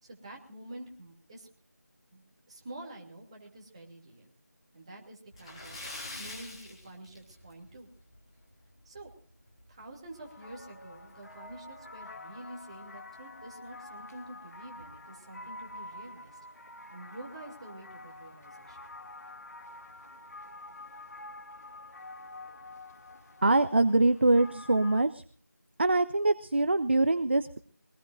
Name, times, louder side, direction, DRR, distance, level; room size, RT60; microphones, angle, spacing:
voice 1, 0.0-1.5 2.1-4.3 4.7-5.9 6.2-7.9 8.8-9.1 9.7-16.4 16.9-18.8, right 1 dB, 20° right, -1 dB, 2.7 m, -48 dB
Splash splatter, 5.3-7.7 8.0-8.2 8.6-8.7 10.2-10.3 10.6-10.7 11.3-11.6, left 2 dB, 20° left, 3.5 m, -43 dB
sound 1, 10.1-25.0, left 2 dB, 60° left, 2.5 m, -48 dB
voice 2, 23.4-25.2 25.8-27.6, right 2 dB, 35° right, 13 dB, 0.6 m, -24 dB
24.0 x 19.5 x 2.5 m, 0.42 s
figure-of-eight pair, 170°, 10 cm